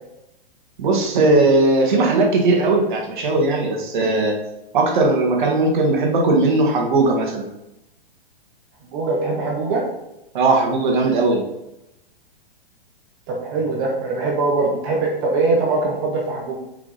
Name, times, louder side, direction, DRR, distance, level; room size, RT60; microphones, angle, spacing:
voice 1, 0.8-4.3 4.7-7.4 10.3-11.4, right 2 dB, 50° right, 1 dB, 1.9 m, -18 dB
voice 2, 8.8-9.8 13.3-16.6, right 3 dB, 20° right, 0 dB, 0.7 m, -22 dB
7.2 x 5.0 x 4.1 m, 0.90 s
hypercardioid pair, 170°, 30 cm